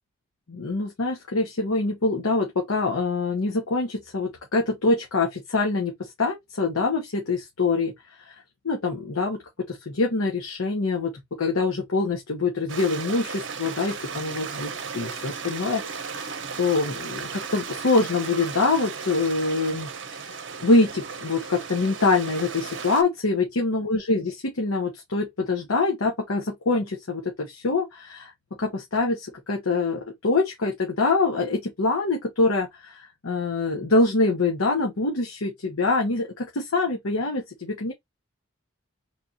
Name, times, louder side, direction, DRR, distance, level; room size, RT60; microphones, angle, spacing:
voice 1, 0.5-7.9 8.2-8.3 8.6-9.4 9.7-11.1 11.4-19.9 20.6-28.3 28.6-37.9, left 3 dB, 90° left, 0.9 m, -25 dB
Stream, 12.7-23.0, right 5 dB, 60° right, 0.7 m, -35 dB
3.3 x 2.4 x 4.1 m
head